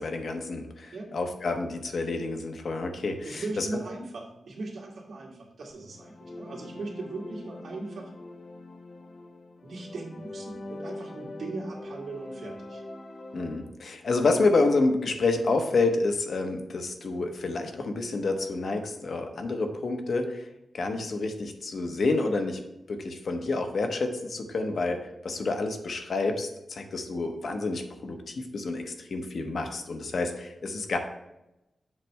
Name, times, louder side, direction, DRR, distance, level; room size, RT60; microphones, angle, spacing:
voice 1, 0.0-3.7 13.3-20.5 20.7-22.6 22.9-31.0, left 3 dB, 60° left, 5 dB, 1.0 m, -28 dB
voice 2, 3.2-8.1 9.6-12.8, right 3 dB, 75° right, -3 dB, 2.2 m, -38 dB
sound 1, 5.8-13.7, left 2 dB, 40° left, 0.7 m, -43 dB
7.5 x 3.4 x 6.2 m, 0.92 s
wide cardioid pair, 140°, 0 cm